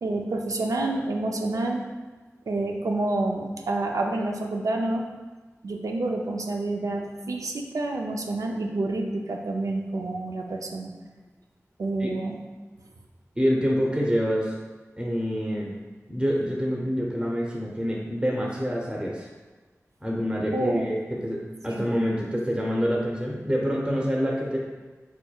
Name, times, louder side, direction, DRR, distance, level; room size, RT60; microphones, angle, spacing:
voice 1, 0.0-1.8 2.5-5.1 5.6-10.9 11.8-12.4 20.5-20.9 21.7-21.9, right 2 dB, 85° right, 2 dB, 0.4 m, -28 dB
voice 2, 13.3-14.6 15.0-15.8 16.1-19.3 20.0-24.6, equal, 20° right, -2 dB, 0.7 m, -26 dB
4.5 x 4.4 x 2.3 m, 1.3 s
wide cardioid pair, 60°, 6 cm